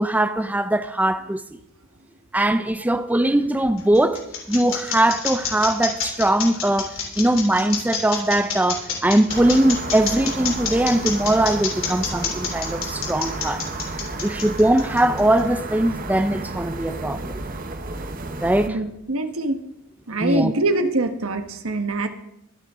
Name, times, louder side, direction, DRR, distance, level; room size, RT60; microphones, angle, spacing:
voice 1, 0.0-1.4 2.3-4.2 4.5-13.6 14.2-17.4 18.4-18.8 20.2-20.5, right 1 dB, 10° right, 0.5 m, -21 dB
sound 1, 3.6-15.4, left 7 dB, 65° left, 3.3 m, -28 dB
sound 2, 9.3-18.7, right 2 dB, 40° right, 1.0 m, -32 dB
voice 2, 18.7-19.6 20.1-22.1, right 2 dB, 80° right, 1.3 m, -24 dB
22.5 x 8.8 x 3.7 m
head